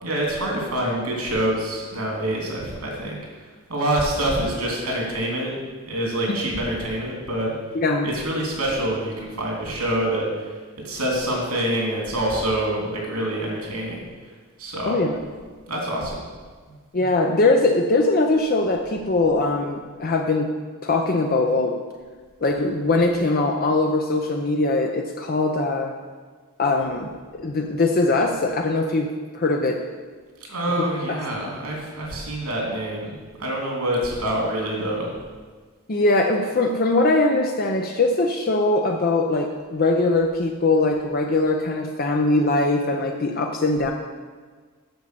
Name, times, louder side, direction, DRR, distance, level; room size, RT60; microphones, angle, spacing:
voice 1, 0.0-3.2 3.7-5.5 5.9-7.5 8.0-10.3 10.8-14.0 14.6-15.0 15.7-16.2 30.5-35.1, right 1 dB, 80° right, -1 dB, 3.1 m, -26 dB
voice 2, 7.7-8.1 14.8-15.2 16.9-20.5 20.8-21.8 22.4-25.9 26.6-29.8 30.8-31.2 35.9-43.9, left 2 dB, 40° left, 2 dB, 0.6 m, -21 dB
8.0 x 7.0 x 6.8 m, 1.5 s
head